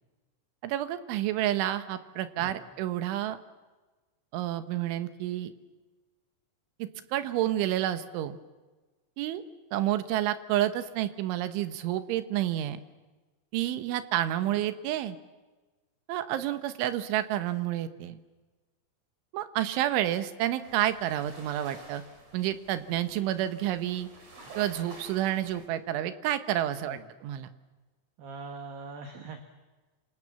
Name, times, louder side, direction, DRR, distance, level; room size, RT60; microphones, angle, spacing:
voice 1, 0.6-3.4 4.3-5.5 6.8-8.4 9.2-9.4 9.7-12.8 13.5-15.2 16.1-18.2 19.3-22.0 22.3-24.1 24.6-27.5, right 12 dB, 80° right, 10 dB, 3.7 m, -29 dB
sound 1, 20.6-25.7, right 2 dB, 35° right, 5.6 m, -50 dB
voice 2, 28.2-29.4, right 3 dB, 60° right, 6 dB, 3.0 m, -42 dB
27.5 x 27.0 x 7.3 m, 1.2 s
omnidirectional pair, 5.5 m